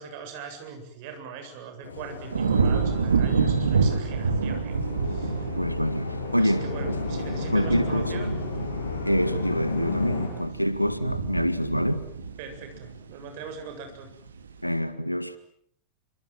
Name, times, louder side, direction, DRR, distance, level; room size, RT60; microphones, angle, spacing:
voice 1, 0.0-4.8 5.0-5.3 6.4-8.4 12.4-14.1, right 5 dB, 50° right, 7.9 m, -41 dB
sound 1, 1.8-10.3, left 3 dB, 70° left, 7.8 m, -33 dB
sound 2, 2.3-13.6 14.0-14.5, right 5 dB, 70° right, 2.8 m, -28 dB
voice 2, 5.4-6.9 7.5-8.4 9.1-12.1 14.6-15.4, equal, 90° left, 2.0 m, -26 dB
27.5 x 26.0 x 7.8 m
figure-of-eight pair, 90°, 0 cm